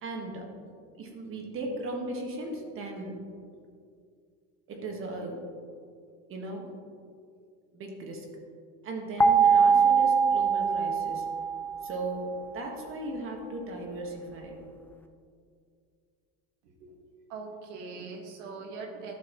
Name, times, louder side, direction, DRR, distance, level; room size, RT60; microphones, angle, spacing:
voice 1, 0.0-0.5 1.0-3.2 4.7-5.5 6.3-6.7 7.7-8.2 8.8-11.3 11.8-14.6, right 2 dB, 35° right, 1 dB, 1.5 m, -37 dB
sound 1, 9.2-12.2, right 6 dB, 5° left, 0.3 m, -23 dB
voice 2, 17.3-19.2, right 4 dB, 85° right, 1 dB, 1.8 m, -41 dB
12.0 x 6.8 x 3.0 m, 2.2 s
supercardioid pair, 135°, 35 cm